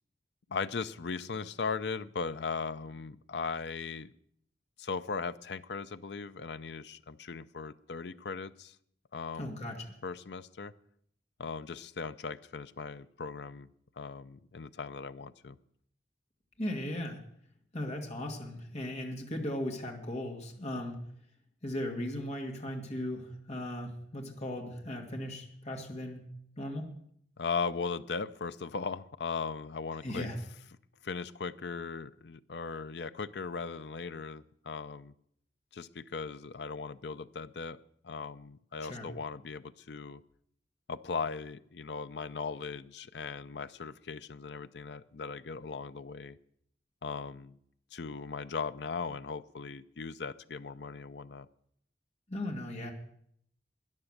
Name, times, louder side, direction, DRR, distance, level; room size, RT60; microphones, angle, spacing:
voice 1, 0.5-4.1 4.8-8.8 9.1-9.5 10.0-10.7 11.4-13.7 14.0-15.6 27.4-30.3 31.0-35.1 35.7-37.8 38.0-40.2 40.9-46.4 47.0-47.6 47.9-51.5, left 5 dB, 70° left, 13 dB, 0.6 m, -38 dB
voice 2, 9.4-9.8 16.6-17.2 17.7-21.0 21.6-26.3 26.6-26.9 30.0-30.4 38.8-39.1 52.3-52.9, left 1 dB, 40° left, 1 dB, 2.3 m, -37 dB
13.0 x 10.0 x 6.5 m, 0.69 s
head